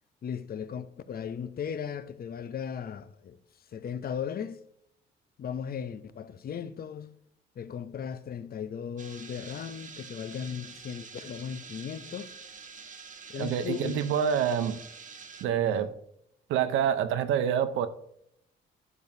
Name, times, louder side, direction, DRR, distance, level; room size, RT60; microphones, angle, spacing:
voice 1, 0.2-3.4 3.7-4.6 5.4-7.1 7.6-12.3 13.3-14.1 15.7-15.9, left 7 dB, 50° left, 0.7 m, -37 dB
sound 1, 9.0-15.5, right 5 dB, 40° right, 1.0 m, -47 dB
voice 2, 13.4-14.8 15.4-15.9 16.5-17.9, right 8 dB, 90° right, 0.8 m, -27 dB
12.0 x 7.3 x 2.7 m
cardioid pair, 90°, 20 cm